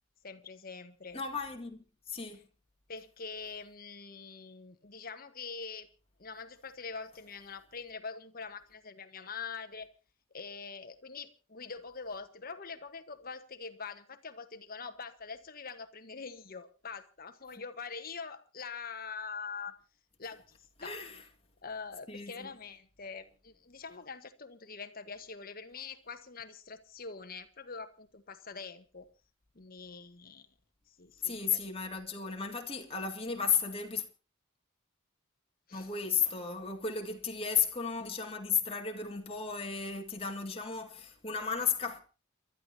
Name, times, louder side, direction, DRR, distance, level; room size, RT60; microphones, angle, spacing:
voice 1, 0.2-1.2 2.9-5.9 6.2-9.9 10.3-19.7 20.2-21.0 21.6-29.1 29.5-30.5 31.0-32.0 35.7-35.9, left 5 dB, 45° left, 1.4 m, -44 dB
voice 2, 1.1-1.8 2.1-2.4 20.8-21.2 22.1-22.5 31.2-34.0 35.7-42.0, left 6 dB, 30° left, 2.0 m, -34 dB
29.5 x 13.0 x 2.9 m
head